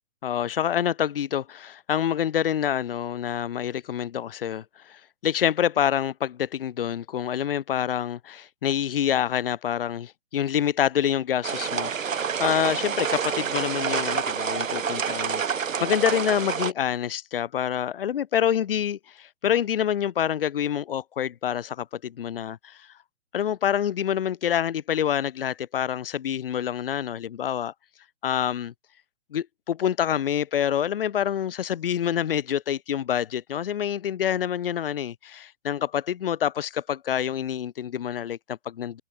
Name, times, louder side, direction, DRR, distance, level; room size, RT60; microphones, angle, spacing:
voice 1, 0.2-22.9 23.3-27.7 28.2-28.7 29.3-39.0, left 9 dB, 45° left, 1.1 m, -27 dB
sound 1, 11.4-16.7, right 7 dB, 90° right, 1.9 m, -28 dB
hypercardioid pair, 165°, 39 cm